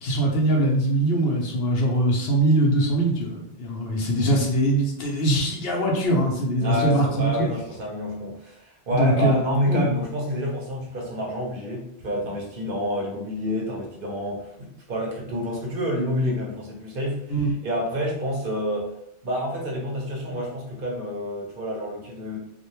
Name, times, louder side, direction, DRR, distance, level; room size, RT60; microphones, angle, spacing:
voice 1, 0.0-7.5 8.9-9.9 17.3-17.5, right 1 dB, 70° left, -1 dB, 0.8 m, -22 dB
voice 2, 6.6-18.9 19.2-22.4, equal, 60° right, -2 dB, 0.8 m, -28 dB
2.5 x 2.1 x 2.9 m, 0.76 s
omnidirectional pair, 1.1 m